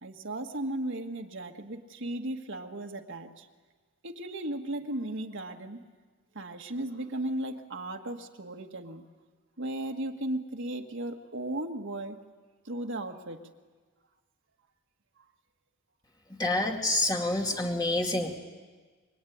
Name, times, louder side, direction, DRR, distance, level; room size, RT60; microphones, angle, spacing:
voice 1, 0.0-3.5 4.0-5.8 6.4-9.0 9.6-12.2 12.7-13.4, right 1 dB, 55° right, 3 dB, 1.9 m, -36 dB
voice 2, 16.4-18.4, left 2 dB, 20° left, 1 dB, 2.2 m, -27 dB
24.5 x 23.0 x 9.5 m, 1.4 s
head